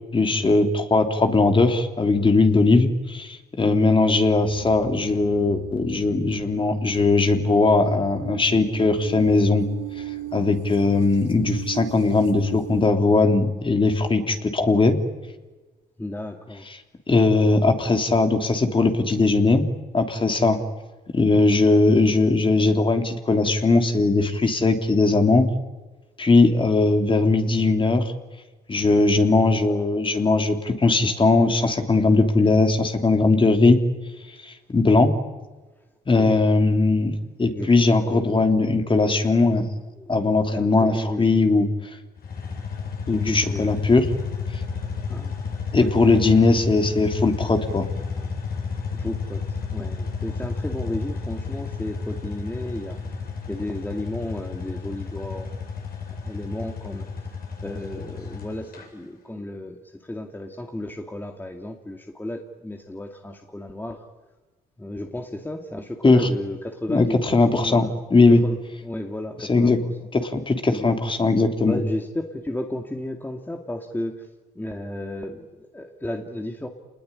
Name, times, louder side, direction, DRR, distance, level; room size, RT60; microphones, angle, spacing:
voice 1, 0.1-9.7 10.3-15.0 17.1-19.7 19.9-20.6 21.1-25.5 26.2-28.0 28.7-33.8 34.4-35.1 36.1-37.1 37.4-39.6 40.1-41.7 43.1-44.1 45.7-47.9 66.0-66.3 66.9-67.9 68.1-68.4 69.4-69.8 70.1-71.8, left 3 dB, 30° left, 6 dB, 3.4 m, -19 dB
voice 2, 3.6-4.1 16.0-16.7 36.2-36.3 37.5-38.4 40.0-41.4 43.1-43.6 45.0-46.2 48.9-49.4 49.7-53.0 53.5-55.6 56.2-57.1 57.6-64.0 64.8-67.2 67.5-68.0 68.3-69.7 70.7-70.9 71.7-74.3 74.6-76.7, left 1 dB, 10° left, 3 dB, 2.4 m, -33 dB
sound 1, 4.4-12.9, right 12 dB, 85° right, 3.5 m, -36 dB
sound 2, 42.2-58.9, left 5 dB, 60° left, 8.0 m, -31 dB
28.0 x 20.5 x 10.0 m, 1.2 s
cardioid pair, 80°, 18 cm